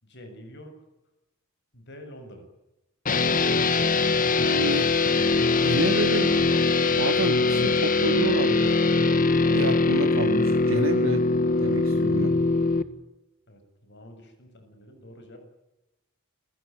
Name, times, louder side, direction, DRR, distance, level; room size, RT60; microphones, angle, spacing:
voice 1, 0.0-0.7 1.7-2.4 13.5-15.4, equal, 55° left, 7 dB, 7.0 m, -47 dB
sound 1, 3.1-12.8, left 3 dB, 40° left, 1.5 m, -22 dB
voice 2, 4.4-5.2 5.6-6.4 7.0-8.8 9.5-11.2 11.6-12.3, right 2 dB, 65° right, 7 dB, 1.8 m, -29 dB
28.0 x 16.5 x 9.4 m, 0.94 s
head